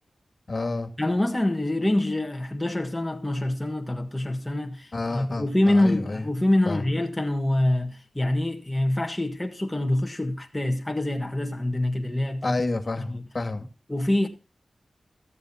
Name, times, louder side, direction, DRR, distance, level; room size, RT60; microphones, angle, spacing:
voice 1, 0.5-0.9 4.9-6.3 6.7-6.8 12.4-13.7, left 2 dB, 50° left, 2.3 m, -29 dB
voice 2, 1.0-12.6 13.0-13.2 13.9-14.3, left 1 dB, 15° left, 1.6 m, -25 dB
16.5 x 14.0 x 2.8 m
cardioid pair, 60°, 0 cm